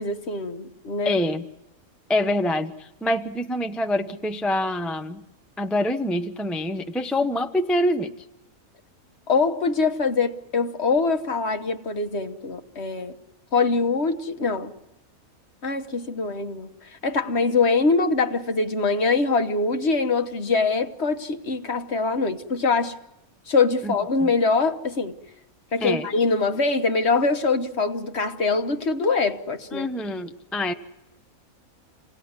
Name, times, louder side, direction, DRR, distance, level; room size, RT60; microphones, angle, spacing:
voice 1, 0.0-1.1 9.3-13.1 13.5-14.7 15.6-22.9 23.5-25.2 25.7-29.9, left 4 dB, 50° left, 1.5 m, -23 dB
voice 2, 1.0-1.4 2.1-5.2 5.6-8.1 23.8-23.9 24.2-24.3 25.8-26.1 29.7-30.7, left 1 dB, ahead, 0.6 m, -25 dB
27.5 x 18.0 x 9.6 m
omnidirectional pair, 1.5 m